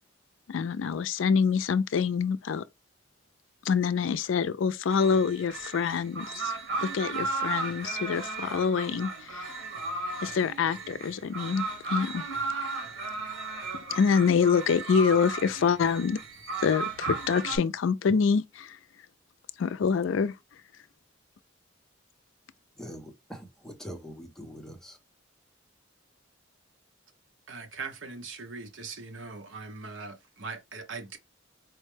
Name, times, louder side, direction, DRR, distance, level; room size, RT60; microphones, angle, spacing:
voice 1, 0.5-2.6 3.6-6.5 6.8-9.5 10.2-12.2 13.7-16.2 16.6-18.8 19.6-20.3, left 6 dB, 75° left, 0.4 m, -26 dB
Mantra In Indian Temple, 4.9-17.6, right 3 dB, 85° right, 1.4 m, -35 dB
voice 2, 22.8-25.0, equal, 5° left, 0.7 m, -43 dB
voice 3, 27.5-31.2, right 4 dB, 70° right, 0.9 m, -40 dB
4.6 x 2.2 x 3.2 m
head